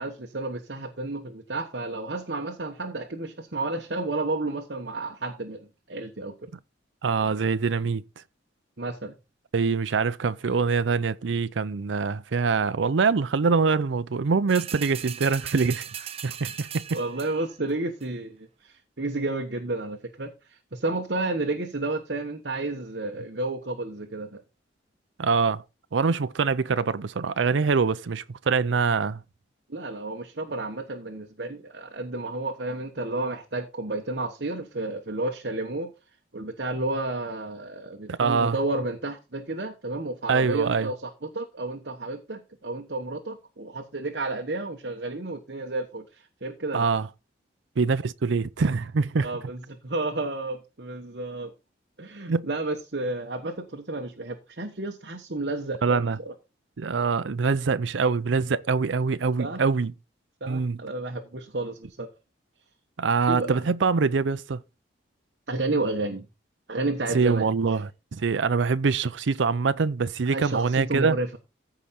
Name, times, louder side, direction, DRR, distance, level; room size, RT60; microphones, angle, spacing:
voice 1, 0.0-6.4 8.8-9.1 16.9-24.4 29.7-35.9 36.3-46.9 49.2-51.5 52.0-56.3 59.4-59.6 60.4-62.1 63.3-63.6 65.5-66.2 66.7-67.5 70.3-71.3, right 2 dB, 60° right, 1.2 m, -31 dB
voice 2, 7.0-8.0 9.5-15.8 16.2-17.0 25.2-25.6 25.9-29.2 38.1-38.6 40.3-40.9 46.7-47.1 47.8-49.3 52.3-52.4 55.8-56.2 56.8-59.9 60.5-60.8 63.0-64.6 67.1-71.2, right 5 dB, 80° right, 0.5 m, -24 dB
sound 1, 14.5-17.6 18.0-18.1, right 9 dB, 30° right, 0.5 m, -38 dB
14.5 x 5.0 x 4.3 m
head